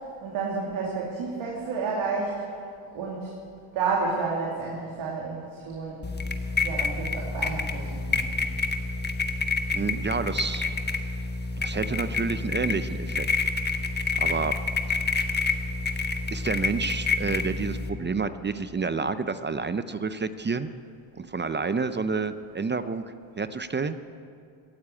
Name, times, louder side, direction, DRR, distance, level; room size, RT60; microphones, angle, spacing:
voice 1, 0.2-2.6 2.9-3.3 3.7-6.0 6.6-8.2, right 4 dB, 75° right, -3 dB, 2.7 m, -30 dB
sound 1, 6.0-17.9, left 4 dB, 20° left, 1.2 m, -28 dB
voice 2, 9.7-10.7 11.0-11.1 11.6-13.3 14.2-14.5 16.3-20.7 21.1-23.1 23.4-24.0, right 4 dB, 25° right, 12 dB, 0.6 m, -29 dB
16.5 x 9.5 x 8.6 m, 2.4 s
cardioid pair, 75°, 47 cm